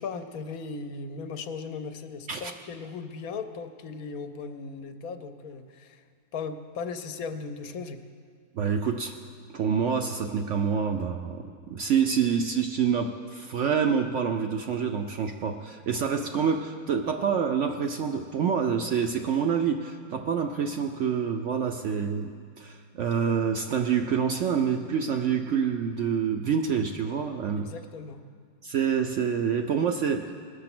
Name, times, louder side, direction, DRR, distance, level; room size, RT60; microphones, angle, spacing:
voice 1, 0.0-6.0 6.3-8.0 27.5-28.2, left 5 dB, 70° left, 8 dB, 1.0 m, -37 dB
voice 2, 8.5-9.2 9.5-22.3 22.6-27.7 28.6-30.3, right 7 dB, 65° right, 5 dB, 0.7 m, -27 dB
19.5 x 6.7 x 6.0 m, 2.1 s
omnidirectional pair, 1.7 m